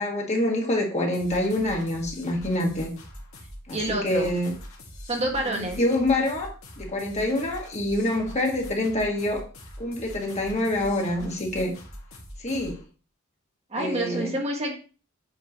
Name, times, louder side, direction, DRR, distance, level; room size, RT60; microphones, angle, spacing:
voice 1, 0.0-2.9 3.7-4.5 5.4-6.5 6.8-9.4 9.8-11.7 12.4-12.8 13.8-14.4, left 1 dB, 35° left, 0 dB, 1.6 m, -26 dB
sound 1, 1.1-12.8, equal, 70° left, 2.0 m, -43 dB
voice 2, 3.7-4.3 5.1-5.8 13.7-14.8, right 1 dB, 30° right, 1 dB, 1.3 m, -28 dB
7.4 x 5.1 x 2.9 m, 0.36 s
head